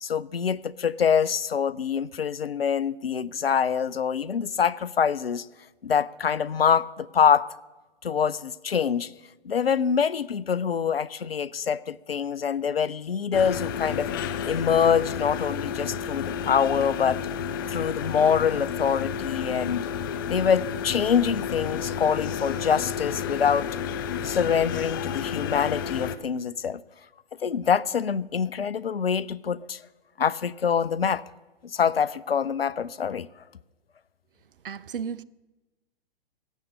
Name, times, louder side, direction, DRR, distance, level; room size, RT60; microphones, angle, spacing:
voice 1, 0.0-5.5 5.8-7.5 8.0-9.1 9.4-14.1 14.4-17.2 17.7-19.9 20.3-23.7 24.2-26.8 27.4-29.8 30.2-31.2 31.7-33.3, left 7 dB, 80° left, 0.5 m, -25 dB
sound 1, 13.3-26.2, left 7 dB, 25° left, 0.4 m, -31 dB
voice 2, 34.6-35.2, right 7 dB, 65° right, 0.5 m, -33 dB
14.5 x 8.5 x 6.5 m
figure-of-eight pair, 115°, 29 cm